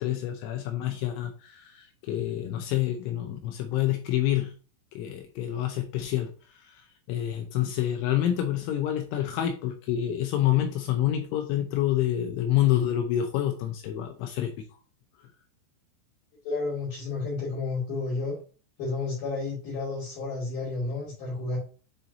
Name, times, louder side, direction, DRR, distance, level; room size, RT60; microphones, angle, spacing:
voice 1, 0.0-4.5 4.9-6.3 6.6-14.5, left 12 dB, 80° left, 5 dB, 2.9 m, -27 dB
voice 2, 16.4-18.3 18.8-21.6, left 3 dB, 50° left, -8 dB, 3.8 m, -31 dB
10.0 x 4.3 x 2.7 m, 0.36 s
omnidirectional pair, 6.0 m